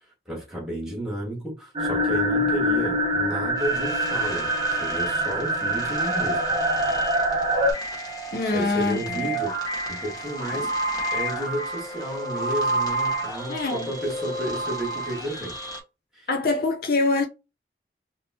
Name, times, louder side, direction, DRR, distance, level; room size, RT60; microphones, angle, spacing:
voice 1, 0.2-4.5 4.8-6.4 7.3-7.4 8.5-10.7 11.1-15.6 16.1-16.3, right 1 dB, 5° right, 1.7 m, -32 dB
sound 1, 1.8-7.7, equal, 30° right, 0.8 m, -24 dB
sound 2, 3.6-15.8, right 2 dB, 20° left, 1.1 m, -31 dB
voice 2, 8.3-9.2 10.5-10.6 13.5-13.9 16.3-17.2, left 3 dB, 55° left, 0.6 m, -24 dB
3.6 x 2.8 x 2.8 m
head